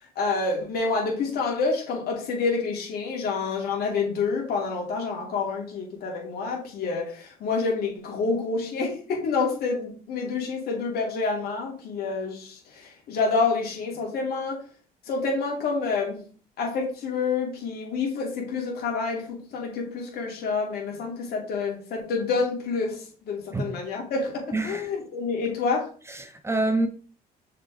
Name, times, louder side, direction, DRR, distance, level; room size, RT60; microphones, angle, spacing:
voice 1, 0.2-14.6 15.0-16.2 16.6-25.9, left 4 dB, 65° left, 2.7 m, -28 dB
voice 2, 24.5-24.9 26.1-26.9, right 2 dB, 15° right, 0.7 m, -26 dB
6.5 x 4.3 x 3.5 m
cardioid pair, 110°, 17 cm